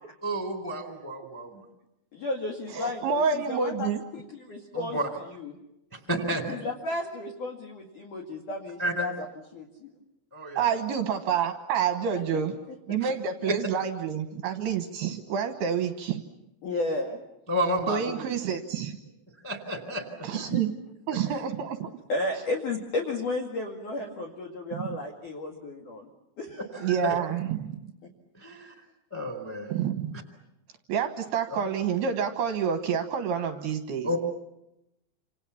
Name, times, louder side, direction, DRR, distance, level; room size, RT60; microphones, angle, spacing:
voice 1, 0.2-1.6 4.7-5.1 5.9-6.5 8.8-9.1 10.3-10.7 13.0-13.1 17.5-18.0 19.4-20.3 26.8-27.1 28.4-28.7 29.1-29.7 31.5-31.6 34.0-34.2, equal, 5° left, 6 dB, 2.6 m, -31 dB
voice 2, 2.1-5.6 6.5-9.3 9.5-9.9 12.1-12.2 14.8-15.0 16.6-17.2 20.3-20.7 21.2-21.4 22.1-26.1 26.4-26.7, left 2 dB, 50° left, 4 dB, 2.9 m, -33 dB
voice 3, 2.7-4.0 10.6-12.5 12.9-16.2 17.9-19.0 20.2-20.7 21.1-21.9 24.8-24.9 26.8-27.8 29.7-30.1 30.9-34.2, right 7 dB, 70° right, 7 dB, 2.6 m, -28 dB
27.5 x 27.5 x 7.1 m, 0.88 s
omnidirectional pair, 5.9 m